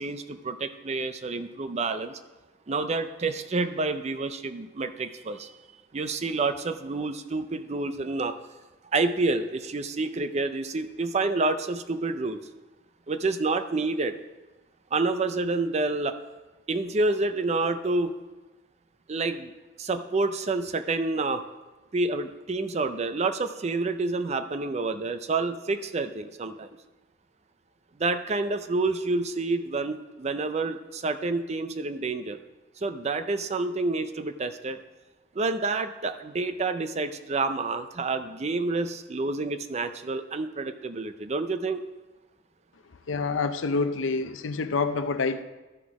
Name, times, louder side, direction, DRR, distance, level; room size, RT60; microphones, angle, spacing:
voice 1, 0.0-2.2 2.7-5.5 5.9-8.4 8.9-12.4 13.1-14.2 14.9-16.2 16.7-18.1 19.1-19.5 19.8-21.4 21.9-26.7 28.0-32.4 32.8-34.8 35.3-41.8, right 3 dB, 35° right, 9 dB, 0.5 m, -28 dB
voice 2, 43.1-45.4, left 4 dB, 80° left, 10 dB, 0.6 m, -27 dB
12.0 x 6.1 x 4.8 m, 1.2 s
head